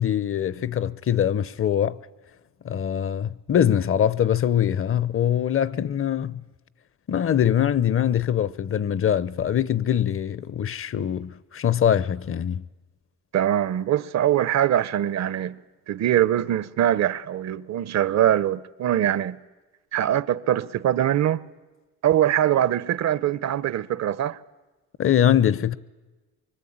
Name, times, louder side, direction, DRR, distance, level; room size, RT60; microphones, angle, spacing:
voice 1, 0.0-2.0 2.6-6.4 7.1-12.6 25.0-25.8, left 9 dB, 45° left, 0.8 m, -23 dB
voice 2, 13.3-15.6 15.9-19.4 19.9-21.5 22.0-24.4, right 11 dB, 60° right, 0.8 m, -23 dB
24.0 x 24.0 x 8.8 m
cardioid pair, 90°, 30 cm